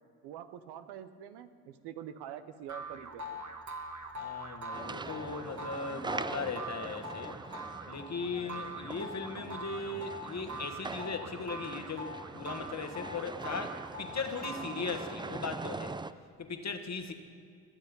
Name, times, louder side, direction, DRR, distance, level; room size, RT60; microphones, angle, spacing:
voice 1, 0.2-3.4, right 10 dB, 85° right, 11 dB, 0.8 m, -45 dB
sound 1, 2.7-15.2, right 1 dB, 45° right, 1.6 m, -43 dB
voice 2, 4.2-7.4 7.9-16.0 16.4-17.1, left 4 dB, 45° left, 6 dB, 1.5 m, -38 dB
sound 2, 4.7-16.1, right 3 dB, 10° right, 0.4 m, -43 dB
21.5 x 7.3 x 5.3 m, 2.3 s
supercardioid pair, 45°, 38 cm